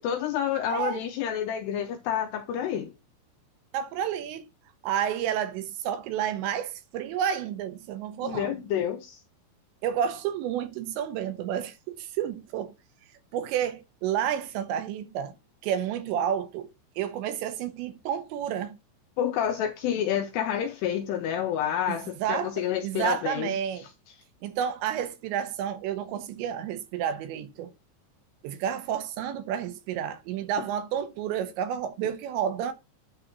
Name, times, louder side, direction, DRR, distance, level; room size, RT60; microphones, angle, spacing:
voice 1, 0.0-2.9 8.2-9.2 19.2-23.5, left 9 dB, 90° left, 2.4 m, -29 dB
voice 2, 0.7-1.0 3.7-4.4 4.8-8.6 9.8-12.7 13.3-15.4 15.6-16.7 17.0-18.8 21.9-23.9 24.4-27.7 28.4-32.7, right 9 dB, 75° right, 2.9 m, -30 dB
9.9 x 3.8 x 6.0 m
omnidirectional pair, 5.5 m